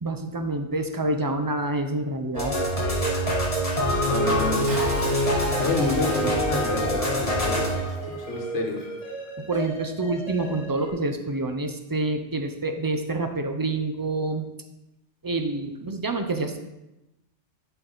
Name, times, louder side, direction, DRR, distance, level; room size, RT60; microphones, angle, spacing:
voice 1, 0.0-2.5 9.5-14.4 15.2-16.6, right 2 dB, 35° right, 6 dB, 0.3 m, -27 dB
sound 1, 2.3-10.9, equal, 30° left, 1.4 m, -26 dB
voice 2, 4.1-4.7 5.6-8.9, left 3 dB, 80° left, 3 dB, 1.5 m, -28 dB
Bathtub (filling or washing) / Splash splatter, 4.3-9.3 9.5-9.6, right 2 dB, 75° right, 1.9 m, -39 dB
11.0 x 4.7 x 3.9 m, 0.95 s
omnidirectional pair, 1.2 m